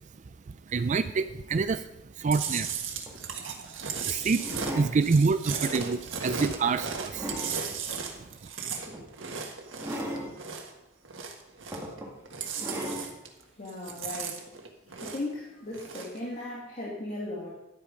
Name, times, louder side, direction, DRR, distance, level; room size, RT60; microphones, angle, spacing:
voice 1, 0.7-1.9 2.2-2.7 4.0-7.3, right 4 dB, 40° right, 12 dB, 0.4 m, -27 dB
Chewing mastication, 2.3-10.8 11.0-12.0 12.2-13.4 13.7-15.4 15.7-16.2, right 6 dB, 75° right, 1.6 m, -36 dB
sound 1, 3.1-3.3 4.3-4.9 5.6-5.8 6.4-7.6 8.9-9.1 9.8-10.3 11.2-11.3 11.7-12.1 12.6-13.1 13.9-14.0, equal, 15° right, 2.0 m, -37 dB
voice 2, 13.6-14.4 14.9-17.5, left 2 dB, 40° left, -4 dB, 2.1 m, -37 dB
11.5 x 8.5 x 5.1 m, 0.94 s
head